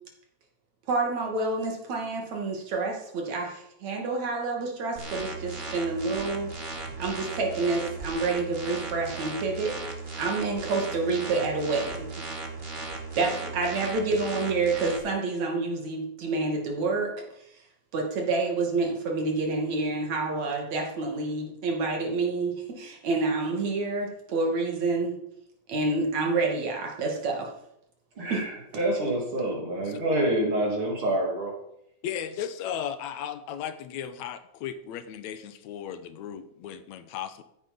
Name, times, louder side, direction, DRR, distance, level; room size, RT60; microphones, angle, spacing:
voice 1, 0.9-6.5 7.0-9.8 10.1-12.1 13.2-17.1 17.9-25.2 25.7-27.5 28.3-28.4, right 3 dB, 65° right, 1 dB, 3.6 m, -28 dB
sound 1, 5.0-15.0, right 3 dB, 25° right, 1.5 m, -37 dB
voice 2, 28.2-31.6, right 1 dB, 45° right, -1 dB, 3.8 m, -27 dB
voice 3, 32.0-37.4, left 9 dB, 75° left, 11 dB, 2.1 m, -36 dB
14.5 x 9.3 x 5.5 m, 0.78 s
omnidirectional pair, 3.5 m